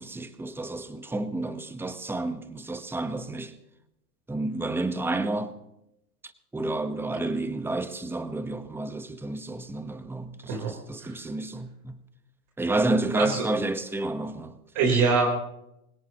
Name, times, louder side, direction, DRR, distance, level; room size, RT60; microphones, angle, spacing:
voice 1, 0.0-3.6 4.3-5.6 6.5-12.0 12.6-14.6, right 2 dB, 5° right, 1.2 m, -30 dB
voice 2, 14.7-15.3, right 4 dB, 45° right, 4.1 m, -23 dB
25.0 x 17.5 x 3.0 m
hypercardioid pair, 100°, 46 cm